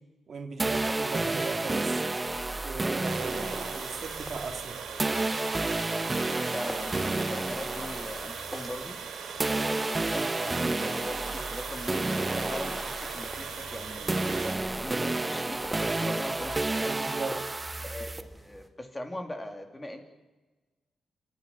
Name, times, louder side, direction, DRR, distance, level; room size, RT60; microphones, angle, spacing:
voice 1, 0.3-2.1 2.6-4.8 16.8-17.3, right 4 dB, 50° right, 5 dB, 2.7 m, -38 dB
sound 1, 0.6-9.1 9.4-18.2, right 2 dB, 20° right, 1.1 m, -31 dB
sound 2, 0.7-18.7, equal, 5° right, 2.5 m, -48 dB
Water, 3.0-14.6, right 6 dB, 85° right, 3.9 m, -40 dB
voice 2, 6.4-9.0 9.5-17.0 17.8-18.1 18.4-20.0, left 1 dB, 15° left, 4 dB, 3.0 m, -40 dB
27.0 x 13.0 x 9.7 m, 1.2 s
cardioid pair, 100°, 0 cm